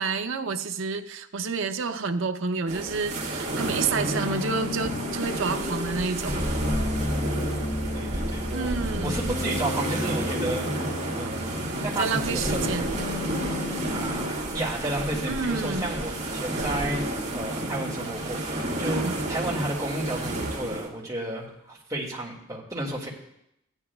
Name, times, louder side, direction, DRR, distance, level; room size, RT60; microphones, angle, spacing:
voice 1, 0.0-6.4 8.5-9.1 12.0-12.9 15.3-16.0 18.8-19.1, right 4 dB, 65° right, 7 dB, 0.6 m, -29 dB
sound 1, 2.7-20.9, right 1 dB, 35° right, 1.7 m, -31 dB
sound 2, 3.6-15.3, left 2 dB, 40° left, 0.6 m, -33 dB
voice 2, 7.9-8.7 9.0-11.6 11.8-12.7 13.9-17.0 17.3-23.1, right 1 dB, 15° right, -3 dB, 2.0 m, -32 dB
15.0 x 9.9 x 2.3 m, 0.81 s
head